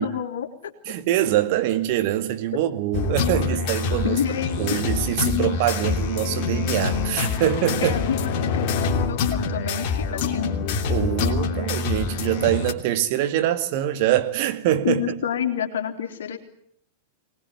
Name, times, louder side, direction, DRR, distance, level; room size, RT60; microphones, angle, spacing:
voice 1, 0.0-0.7 4.0-4.8 7.8-10.5 14.8-16.4, left 8 dB, 60° left, 3.4 m, -28 dB
voice 2, 0.9-4.2 4.6-7.9 10.9-15.0, right 12 dB, 50° right, 2.1 m, -24 dB
sound 1, 2.9-12.7, left 5 dB, 45° left, 2.9 m, -25 dB
23.5 x 19.5 x 9.8 m
figure-of-eight pair, 95°, 0 cm